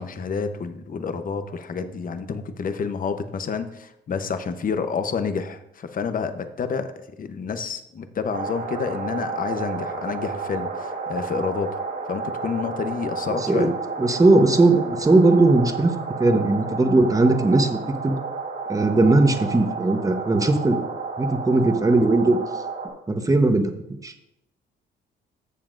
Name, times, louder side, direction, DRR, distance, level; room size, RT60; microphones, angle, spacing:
voice 1, 0.0-6.9 7.2-11.8 12.1-13.7, left 5 dB, 45° left, 9 dB, 0.9 m, -29 dB
sound 1, 8.3-22.9, right 4 dB, 60° right, 3.1 m, -31 dB
voice 2, 13.4-13.7 14.0-15.9 16.2-17.8 18.0-18.2 18.7-20.9 21.2-22.4 23.1-23.7 24.0-24.1, right 2 dB, 15° right, 6 dB, 1.0 m, -18 dB
13.5 x 7.1 x 2.6 m, 0.85 s
cardioid pair, 90°, 20 cm